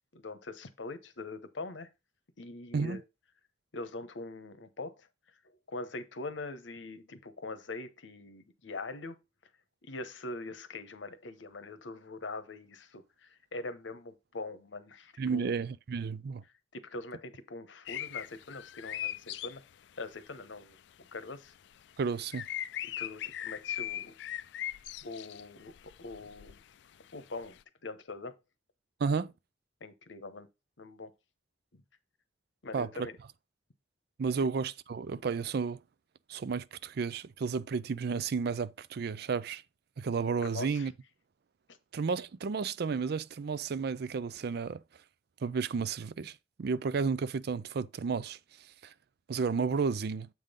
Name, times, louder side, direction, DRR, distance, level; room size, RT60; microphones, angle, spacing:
voice 1, 0.1-1.9 2.4-3.0 3.7-5.4 5.7-9.2 9.8-15.5 16.7-19.6 20.0-20.8 21.1-21.5 23.0-24.1 25.0-26.6 27.1-28.4 29.8-30.5 30.8-31.1 31.7-31.8 32.6-33.2 40.4-40.9 41.7-41.8, left 2 dB, 80° left, 1.0 m, -43 dB
voice 2, 15.2-16.4 22.0-22.5 29.0-29.3 32.7-32.9 34.2-35.8 36.3-39.6 40.0-40.9 41.9-44.8 45.4-48.4 48.8-48.9 49.3-50.3, right 5 dB, 60° right, 0.4 m, -32 dB
sound 1, 17.9-19.7 20.3-20.4 21.8-22.0 22.3-25.4 25.7-26.6 27.4-27.6, left 12 dB, 65° left, 0.3 m, -39 dB
7.6 x 3.7 x 5.1 m
head